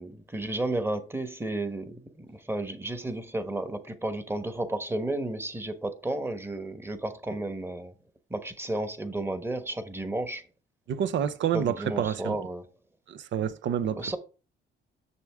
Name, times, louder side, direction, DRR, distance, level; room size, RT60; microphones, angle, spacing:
voice 1, 0.0-7.9 8.3-10.4 11.5-12.6 14.0-14.2, right 2 dB, 10° right, 1.2 m, -32 dB
voice 2, 10.9-12.4 13.1-14.2, right 9 dB, 65° right, 0.7 m, -28 dB
6.9 x 6.4 x 3.6 m
cardioid pair, 90°, 20 cm